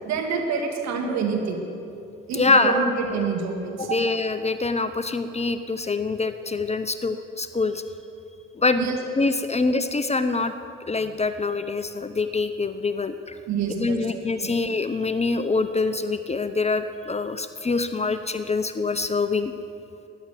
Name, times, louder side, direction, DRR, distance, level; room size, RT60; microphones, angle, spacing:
voice 1, 0.1-1.6 2.3-4.0 8.8-9.0 9.5-9.6 13.5-14.5 18.0-18.1, right 5 dB, 60° right, 3 dB, 2.1 m, -27 dB
voice 2, 2.3-2.8 3.8-7.8 8.6-8.9 9.2-10.5 10.9-13.4 13.8-19.5, left 3 dB, 20° left, 10 dB, 0.7 m, -25 dB
13.0 x 10.5 x 7.7 m, 2.7 s
hypercardioid pair, 50°, 30 cm